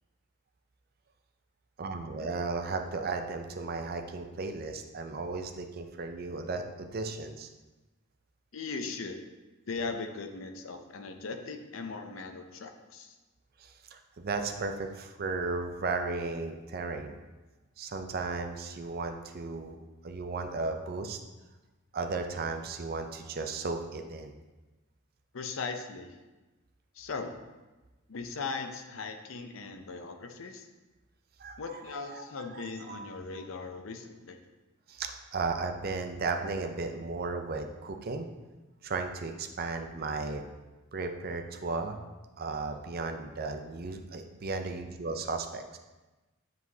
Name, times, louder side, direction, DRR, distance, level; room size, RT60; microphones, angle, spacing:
voice 1, 1.8-7.5 13.6-17.2 17.8-19.8 20.0-21.2 21.9-24.3 31.4-32.2 32.5-33.1 34.9-38.3 38.8-40.5 40.9-42.0 42.4-45.8, right 3 dB, 45° right, 5 dB, 0.5 m, -35 dB
voice 2, 8.5-9.2 9.7-13.1 25.3-26.1 27.0-27.3 28.1-30.7 31.6-34.4, left 4 dB, 70° left, 6 dB, 0.6 m, -38 dB
8.0 x 4.7 x 2.7 m, 1.1 s
head